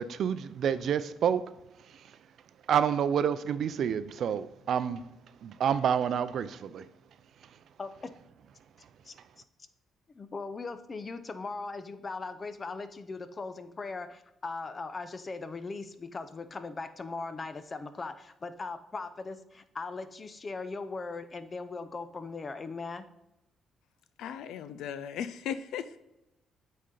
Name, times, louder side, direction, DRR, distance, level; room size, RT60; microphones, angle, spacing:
voice 1, 0.0-1.4 1.9-2.2 2.7-5.0 5.4-6.9, right 8 dB, 65° right, 0.5 m, -28 dB
voice 2, 7.8-8.2 9.0-9.1 10.1-23.1, left 3 dB, 35° left, 0.6 m, -39 dB
voice 3, 24.2-26.0, left 8 dB, 85° left, 0.4 m, -37 dB
8.4 x 4.3 x 3.9 m
cardioid pair, 90°, 0 cm